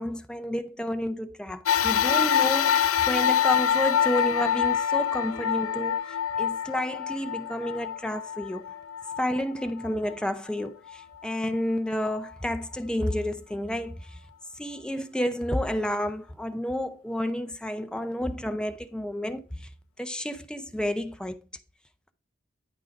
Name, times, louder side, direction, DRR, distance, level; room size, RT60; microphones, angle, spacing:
voice 1, 0.0-6.0 6.4-8.6 9.2-14.2 14.6-19.7 20.0-21.4, left 1 dB, 5° left, 0.5 m, -30 dB
sound 1, 1.7-10.3 10.9-11.0 12.1-12.2, left 9 dB, 90° left, 0.4 m, -26 dB
9.6 x 4.7 x 3.8 m
head